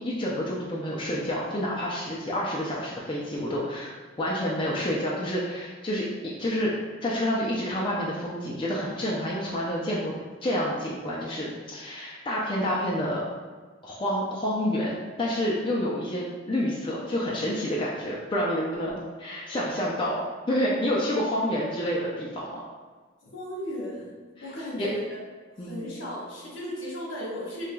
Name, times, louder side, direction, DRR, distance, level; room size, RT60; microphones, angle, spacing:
voice 1, 0.0-6.1 6.4-6.7 7.0-10.1 10.4-13.2 13.8-20.2 20.5-22.6 24.4-24.5 24.8-24.9 25.6-25.9, equal, 25° left, -5 dB, 0.4 m, -28 dB
voice 2, 23.3-24.1 24.4-25.2 25.6-27.7, left 1 dB, 75° left, -5 dB, 1.2 m, -35 dB
4.7 x 2.9 x 2.2 m, 1.4 s
head